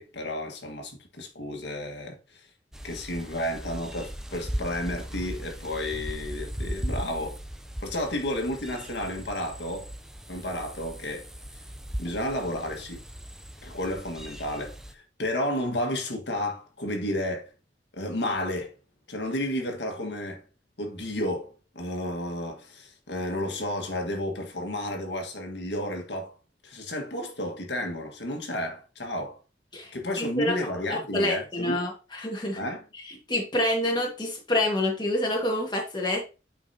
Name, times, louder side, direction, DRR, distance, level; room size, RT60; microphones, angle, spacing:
voice 1, 0.0-2.5 2.8-7.4 7.8-9.9 10.3-11.3 12.0-13.0 13.6-17.5 17.9-18.7 19.1-20.4 20.8-26.3 26.6-29.4 29.9-31.8 32.5-32.8, left 1 dB, 80° left, 1.6 m, -32 dB
sound 1, 2.7-14.9, equal, 5° right, 0.5 m, -38 dB
voice 2, 29.7-30.6 31.1-32.6 33.3-36.3, left 1 dB, 25° left, 1.7 m, -27 dB
8.7 x 5.0 x 2.8 m
head